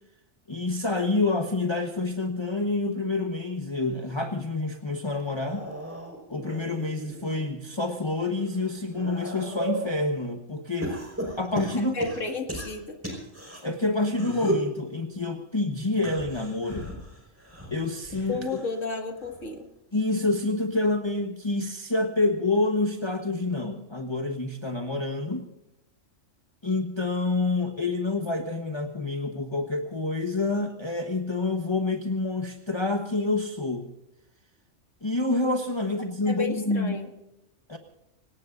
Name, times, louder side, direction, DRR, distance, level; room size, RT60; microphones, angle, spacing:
voice 1, 0.5-5.6 6.3-10.9 11.4-12.1 13.6-16.9 17.7-18.4 19.9-25.5 26.6-33.9 35.0-37.0 37.7-37.8, left 2 dB, 25° left, 3 dB, 1.2 m, -27 dB
sound 1, 5.2-7.5 8.0-10.0 10.8-13.6 14.1-14.7 15.9-18.8 19.2-19.6 20.8-20.9, right 1 dB, 10° right, 5.2 m, -35 dB
voice 2, 11.8-13.0 18.3-19.7 36.3-37.1, left 4 dB, 80° left, 4 dB, 2.5 m, -33 dB
26.5 x 17.5 x 2.6 m, 0.89 s
omnidirectional pair, 1.3 m